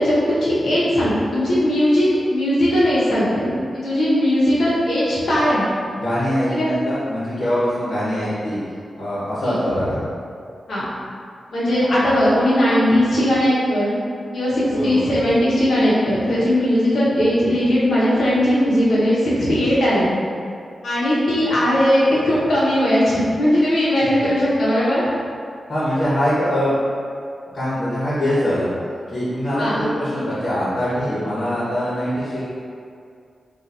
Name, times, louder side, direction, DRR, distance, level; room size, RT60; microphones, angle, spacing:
voice 1, 0.0-5.7 6.5-6.7 9.4-9.6 10.7-10.8 11.5-14.0 14.3-20.2 20.8-25.1 29.6-29.8, equal, 80° left, -9 dB, 1.1 m, -18 dB
voice 2, 6.0-8.6 8.9-10.0 14.7-15.0 24.2-24.3 25.7-26.7 27.5-28.7 29.1-32.4, equal, 55° left, -10 dB, 1.2 m, -23 dB
4.3 x 2.7 x 2.6 m, 2.3 s
cardioid pair, 55°, 0 cm